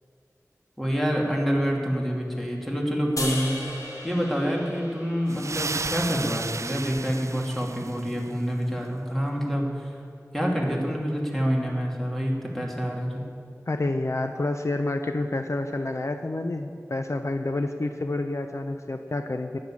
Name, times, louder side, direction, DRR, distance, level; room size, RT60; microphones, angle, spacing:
voice 1, 0.8-10.0 10.3-13.2, equal, 5° left, -1 dB, 2.8 m, -27 dB
sound 1, 3.2-6.4, left 1 dB, 85° left, 3.3 m, -36 dB
sound 2, 5.3-8.3, right 4 dB, 60° right, 0.3 m, -33 dB
voice 2, 13.7-19.6, left 2 dB, 55° left, 6 dB, 0.7 m, -28 dB
14.0 x 9.8 x 7.2 m, 2.3 s
wide cardioid pair, 45°, 6 cm